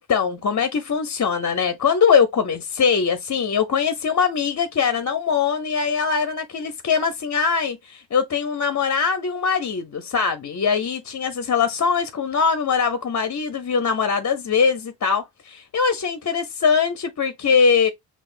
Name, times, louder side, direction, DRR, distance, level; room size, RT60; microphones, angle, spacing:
voice 1, 0.0-17.9, left 6 dB, 40° left, 0.5 m, -22 dB
5.8 x 2.4 x 2.4 m
cardioid pair, 85°, 45 cm